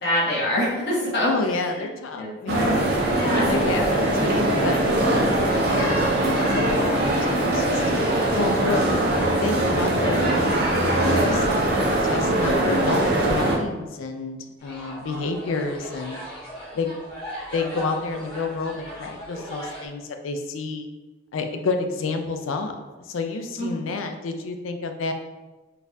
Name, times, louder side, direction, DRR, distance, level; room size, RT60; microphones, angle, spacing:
voice 1, 0.0-1.3 1.8-1.9 2.1-2.3 3.1-3.5 23.6-24.0, left 1 dB, 55° left, -8 dB, 1.3 m, -25 dB
voice 2, 1.2-3.1 3.5-7.8 8.3-9.0 9.4-10.6 10.8-11.5 12.0-16.2 16.7-17.0 17.5-20.9 21.3-22.7 23.1-25.1, left 3 dB, 90° left, 5 dB, 0.4 m, -29 dB
sound 1, 2.5-13.6, right 1 dB, 50° right, 0.5 m, -21 dB
sound 2, 14.6-19.9, equal, 25° left, 1.2 m, -38 dB
3.9 x 2.4 x 2.6 m, 1.2 s
head